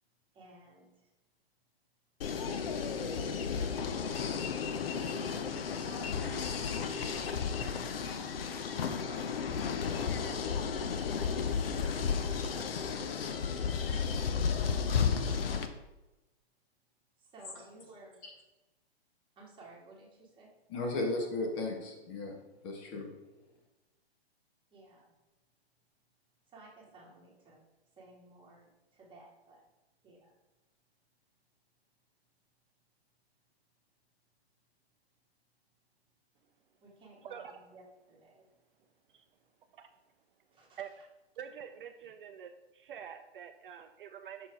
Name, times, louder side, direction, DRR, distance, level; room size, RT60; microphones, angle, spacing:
voice 1, 0.3-0.9 3.1-4.1 5.5-6.1 7.7-8.3 9.1-10.5 11.5-12.5 17.2-18.2 19.3-20.5 24.7-25.1 26.5-27.6 28.0-29.6 30.0-30.3 36.8-37.8 38.1-38.4 40.5-40.8, right 2 dB, 15° right, -4 dB, 1.9 m, -56 dB
sound 1, 2.2-15.7, left 6 dB, 60° left, 0.8 m, -33 dB
voice 2, 20.7-22.3 22.6-23.1, left 2 dB, 30° left, 1 dB, 1.2 m, -35 dB
voice 3, 41.4-44.5, right 8 dB, 55° right, 8 dB, 0.5 m, -46 dB
6.0 x 4.4 x 4.6 m, 1.0 s
figure-of-eight pair, 125°, 32 cm